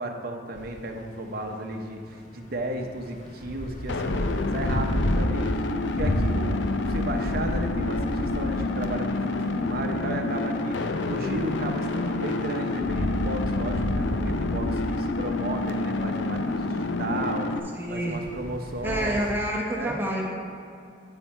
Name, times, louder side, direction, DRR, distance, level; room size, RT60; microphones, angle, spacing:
voice 1, 0.0-19.2 19.7-20.0, right 1 dB, 55° right, 3 dB, 0.8 m, -34 dB
sound 1, 0.6-17.3 17.6-19.5, equal, 40° left, 0.7 m, -33 dB
sound 2, 3.9-17.6, left 2 dB, 70° left, 0.5 m, -28 dB
voice 2, 17.7-18.2 18.8-20.3, right 1 dB, 10° right, -2 dB, 1.0 m, -28 dB
9.1 x 5.7 x 4.4 m, 2.5 s
head